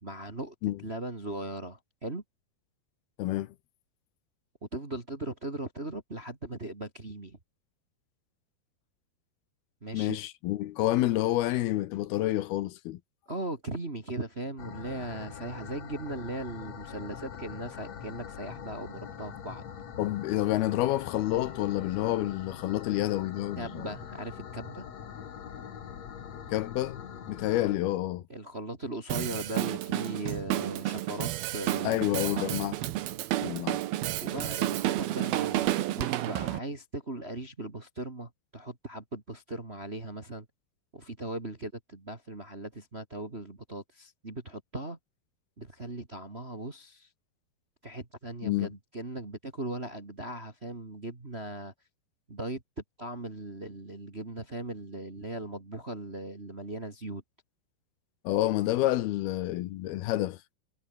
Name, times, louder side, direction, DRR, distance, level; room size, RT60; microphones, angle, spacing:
voice 1, 0.0-0.5 0.8-2.2 4.7-7.4 9.8-10.2 13.3-19.6 23.6-24.9 28.3-32.6 34.2-40.5 40.9-45.0 45.6-47.1 47.8-51.7 52.3-57.2, right 2 dB, 20° right, 1.7 m, -38 dB
voice 2, 3.2-3.6 9.9-13.0 20.0-23.9 26.5-28.2 31.8-32.8 33.4-33.8 48.4-48.7 58.2-60.4, left 15 dB, 75° left, 2.8 m, -29 dB
sound 1, 14.6-27.8, left 8 dB, 50° left, 3.0 m, -43 dB
Drum kit, 29.1-36.6, right 14 dB, 75° right, 2.9 m, -31 dB
omnidirectional pair, 4.6 m